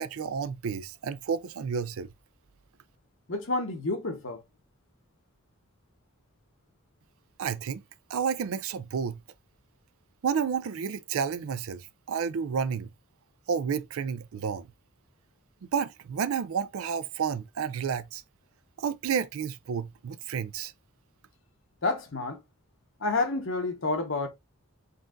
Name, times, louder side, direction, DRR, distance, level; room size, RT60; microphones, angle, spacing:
voice 1, 0.0-2.1 7.4-7.8 8.1-9.2 10.2-12.9 13.5-14.7 15.6-18.2 18.8-20.7, right 6 dB, 75° right, 0.4 m, -31 dB
voice 2, 3.3-4.4 21.8-22.4 23.0-24.3, left 3 dB, 65° left, 1.1 m, -29 dB
4.0 x 3.8 x 2.5 m
head